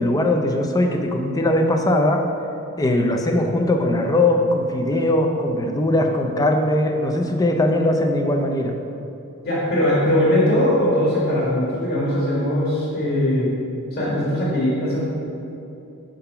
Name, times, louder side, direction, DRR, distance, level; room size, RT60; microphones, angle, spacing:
voice 1, 0.0-2.2 2.8-8.8, left 1 dB, 20° left, 3 dB, 0.4 m, -20 dB
voice 2, 9.4-13.5 13.9-15.0, left 1 dB, 50° left, -7 dB, 1.5 m, -20 dB
5.7 x 3.8 x 5.6 m, 2.7 s
head